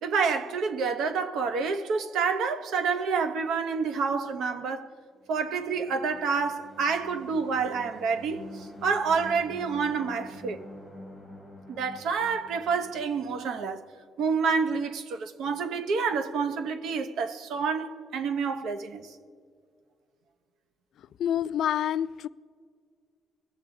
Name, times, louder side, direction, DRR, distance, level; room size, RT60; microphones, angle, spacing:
voice 1, 0.0-4.9 5.3-10.6 11.7-13.8 14.2-19.1, right 5 dB, 75° right, 0.7 m, -28 dB
sound 1, 5.4-14.1, left 1 dB, 25° right, 3.1 m, -47 dB
voice 2, 21.0-22.3, left 10 dB, 65° left, 0.3 m, -28 dB
22.0 x 7.3 x 3.7 m
cardioid pair, 155°, 0 cm